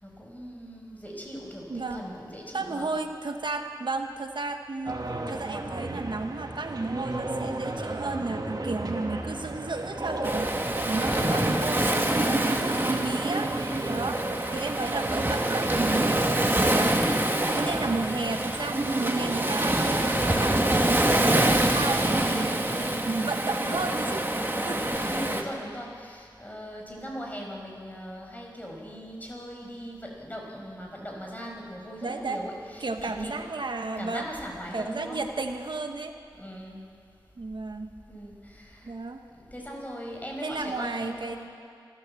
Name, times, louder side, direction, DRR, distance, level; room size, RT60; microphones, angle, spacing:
voice 1, 0.0-3.0 11.0-11.4 13.8-14.3 24.9-33.4 34.0-35.2 36.4-36.8 38.1-38.9 39.3-41.5, equal, 20° left, 0 dB, 5.4 m, -40 dB
voice 2, 1.7-2.0 2.5-5.0 5.3-13.5 13.9-14.2 14.5-16.3 16.6-17.1 17.5-24.3 24.5-24.9 32.0-32.4 32.8-34.3 34.7-36.1 37.4-38.0 38.8-39.2 40.4-41.5, right 3 dB, 75° right, 5 dB, 1.3 m, -33 dB
sound 1, 4.8-21.7, right 2 dB, 55° right, 1.8 m, -33 dB
Waves surf, 10.2-25.4, right 1 dB, 25° right, 1.8 m, -26 dB
27.0 x 13.5 x 7.7 m, 2.3 s
wide cardioid pair, 60°, 8 cm